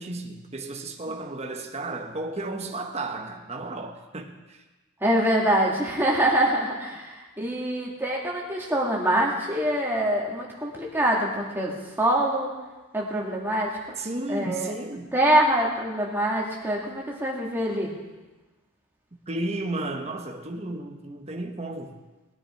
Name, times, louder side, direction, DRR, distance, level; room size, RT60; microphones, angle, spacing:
voice 1, 0.0-4.6 14.0-15.1 19.3-22.0, right 2 dB, 30° right, 3 dB, 1.1 m, -33 dB
voice 2, 5.0-11.7 12.0-12.5 12.9-14.0 14.3-14.7 15.1-17.9, right 1 dB, 10° right, -3 dB, 2.5 m, -24 dB
20.5 x 9.8 x 4.6 m, 1.2 s
head